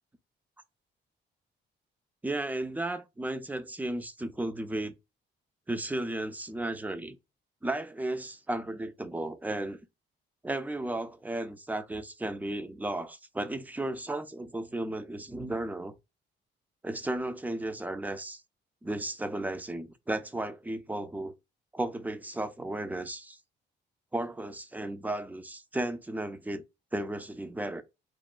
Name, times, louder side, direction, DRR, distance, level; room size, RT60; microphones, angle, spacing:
voice 1, 2.2-4.9 5.7-7.2 7.6-9.8 10.4-15.9 16.8-18.4 18.8-21.3 21.7-23.4 24.1-26.6 26.9-27.8, right 1 dB, 10° right, 0.3 m, -34 dB
2.9 x 2.0 x 2.3 m
cardioid pair, 90°, 20 cm